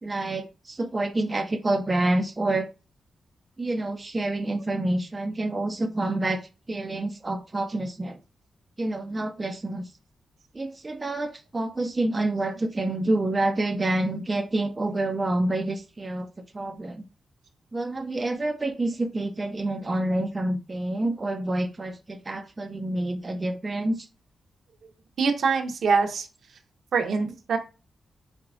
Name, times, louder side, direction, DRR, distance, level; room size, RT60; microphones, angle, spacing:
voice 1, 0.0-2.7 3.6-8.2 8.8-9.9 10.5-17.0 17.7-24.1 27.1-27.4, right 2 dB, 25° right, 0.5 m, -28 dB
voice 2, 25.2-26.3 26.9-27.6, right 5 dB, 75° right, 0.9 m, -24 dB
4.6 x 4.0 x 2.5 m
wide cardioid pair, 125°, 0 cm